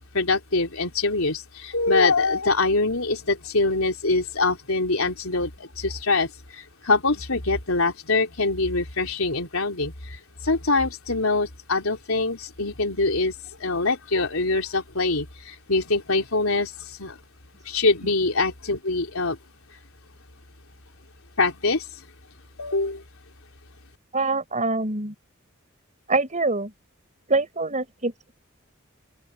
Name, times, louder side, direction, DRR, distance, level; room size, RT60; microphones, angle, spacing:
voice 1, 0.1-13.3 13.6-17.2 17.7-19.4 21.4-21.8 22.6-23.0, left 3 dB, 85° left, 3.6 m, -24 dB
voice 2, 24.1-25.1 26.1-26.7 27.3-28.3, right 3 dB, 35° right, 5.4 m, -25 dB
open air
head